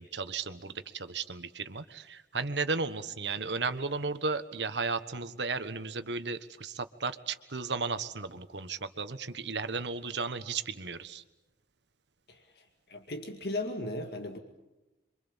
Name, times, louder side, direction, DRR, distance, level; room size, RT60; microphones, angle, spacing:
voice 1, 0.0-11.2, right 4 dB, 85° right, 10 dB, 1.5 m, -34 dB
voice 2, 12.3-12.6 12.9-14.4, left 1 dB, 65° left, 4 dB, 2.2 m, -37 dB
27.5 x 24.5 x 7.3 m, 0.98 s
head